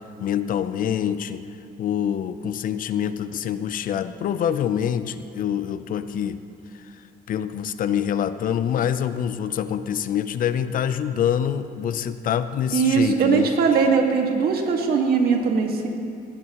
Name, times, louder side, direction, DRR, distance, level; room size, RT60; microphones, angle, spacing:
voice 1, 0.2-1.4 1.8-6.4 7.3-13.5, left 9 dB, 55° left, 12 dB, 0.6 m, -25 dB
voice 2, 12.7-15.9, right 5 dB, 65° right, 2 dB, 1.9 m, -20 dB
18.5 x 16.0 x 3.1 m, 2.6 s
cardioid pair, 110°, 17 cm